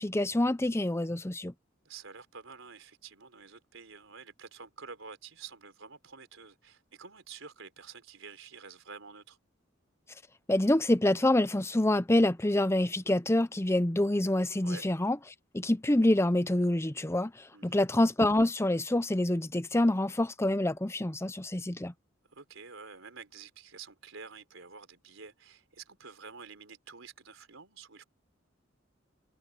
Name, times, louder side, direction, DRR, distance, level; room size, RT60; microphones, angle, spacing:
voice 1, 0.0-1.5 10.5-15.2 15.5-21.9, left 1 dB, 15° left, 0.7 m, -26 dB
voice 2, 1.8-9.4 14.6-14.9 17.5-17.8 22.3-28.0, right 5 dB, 85° right, 4.0 m, -49 dB
head